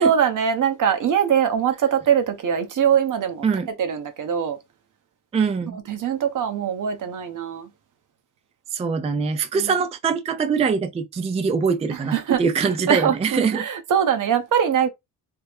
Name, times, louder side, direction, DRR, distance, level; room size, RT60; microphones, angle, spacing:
voice 1, 0.0-3.5 3.8-4.6 5.7-7.7 9.5-9.8 11.9-14.9, right 8 dB, 60° right, 0.9 m, -22 dB
voice 2, 5.3-5.8 8.7-13.6, right 5 dB, 20° right, 0.4 m, -23 dB
3.3 x 2.0 x 3.4 m
cardioid pair, 75°, 36 cm